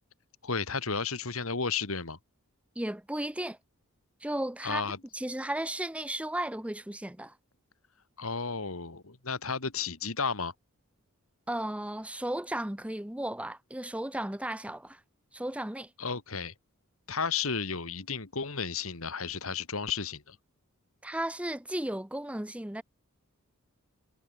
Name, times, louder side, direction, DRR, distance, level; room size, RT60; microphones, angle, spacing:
voice 1, 0.4-2.2 4.6-5.0 8.2-10.5 16.0-16.5 17.1-20.4, left 5 dB, 75° left, 2.3 m, -33 dB
voice 2, 2.8-3.6 4.2-4.8 5.1-7.3 11.5-15.0 15.3-15.9 21.0-22.8, right 1 dB, 5° right, 0.8 m, -34 dB
head